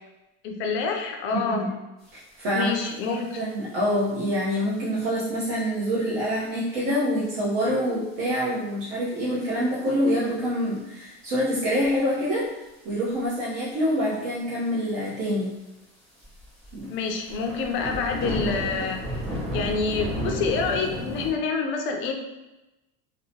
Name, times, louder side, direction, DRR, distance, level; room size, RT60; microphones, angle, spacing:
voice 1, 0.4-1.6 2.5-3.4 16.9-19.0 19.5-22.1, left 5 dB, 40° left, 3 dB, 0.4 m, -27 dB
voice 2, 2.4-2.7 3.1-12.6 12.8-15.5 16.7-16.9, equal, 65° right, -7 dB, 0.8 m, -26 dB
sound 1, 2.7-2.8 3.0-3.4 4.1-4.3 4.9-5.0 5.6-5.7 6.0-6.1 6.3-6.4 7.5-7.8 8.2-8.3 9.2-9.3 9.9-10.3 10.6-10.8 11.3-12.0 13.1-13.3 13.7-13.8 14.0-14.1 14.3-14.4 15.1-15.2 15.5-15.6 16.2-21.3, equal, ahead, 0.7 m, -32 dB
2.7 x 2.1 x 2.7 m, 1.0 s
cardioid pair, 150°, 31 cm